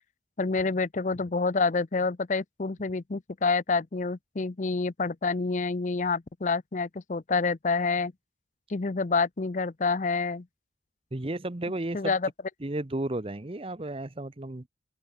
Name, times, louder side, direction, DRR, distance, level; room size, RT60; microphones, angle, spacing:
voice 1, 0.4-8.1 8.7-10.4 11.9-12.3, left 4 dB, 40° left, 0.6 m, -28 dB
voice 2, 11.1-12.2 12.6-14.7, right 1 dB, 30° right, 0.9 m, -33 dB
open air
head